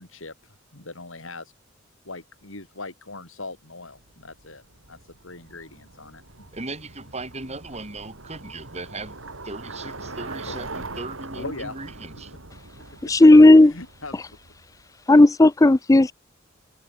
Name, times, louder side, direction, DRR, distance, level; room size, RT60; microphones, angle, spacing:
voice 1, 0.0-1.5 2.1-4.6 4.9-5.0 5.2-6.5 10.5-10.6 11.4-11.7 13.0-13.1 13.6-14.3, left 3 dB, 80° left, 5.5 m, -40 dB
Bicycle, 3.9-14.8, right 3 dB, 75° right, 3.7 m, -41 dB
voice 2, 6.5-12.3, right 2 dB, 35° right, 5.2 m, -37 dB
voice 3, 13.1-13.7 15.1-16.1, left 2 dB, 15° left, 0.4 m, -12 dB
head